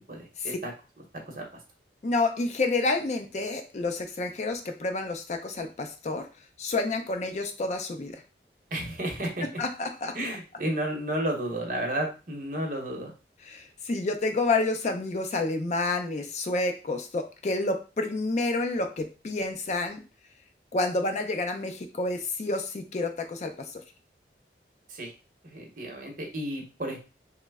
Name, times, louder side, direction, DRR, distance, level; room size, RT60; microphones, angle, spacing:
voice 1, 0.1-0.7 1.3-1.5 8.7-9.4 10.1-13.1 24.9-25.1 25.4-27.0, right 1 dB, 50° right, 1 dB, 0.8 m, -32 dB
voice 2, 2.0-6.3 6.6-8.2 9.6-10.2 13.5-20.0 20.7-23.7, left 2 dB, 40° left, 6 dB, 0.4 m, -29 dB
3.1 x 2.0 x 3.4 m, 0.31 s
head